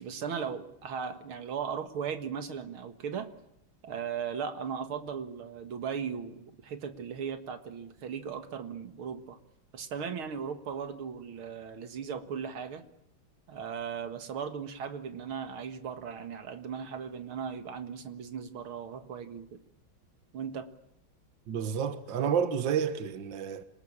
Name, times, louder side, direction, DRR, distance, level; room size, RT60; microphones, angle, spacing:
voice 1, 0.0-3.3 3.8-9.4 9.7-12.8 13.5-19.6 20.3-20.7, right 7 dB, 85° right, 2.6 m, -37 dB
voice 2, 21.5-23.6, right 7 dB, 65° right, 2.1 m, -30 dB
26.5 x 20.0 x 8.7 m
omnidirectional pair, 2.3 m